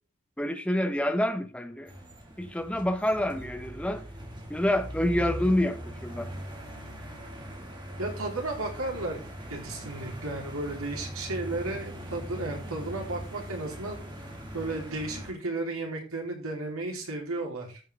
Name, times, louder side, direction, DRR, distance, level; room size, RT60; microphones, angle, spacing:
voice 1, 0.4-1.9 2.4-4.1 4.5-6.3, left 1 dB, 5° left, 1.0 m, -27 dB
sound 1, 1.9-15.3, equal, 20° right, 2.2 m, -40 dB
voice 2, 8.0-9.2 9.5-14.0 14.5-17.8, right 2 dB, 85° right, 3.6 m, -34 dB
13.5 x 7.5 x 3.5 m
head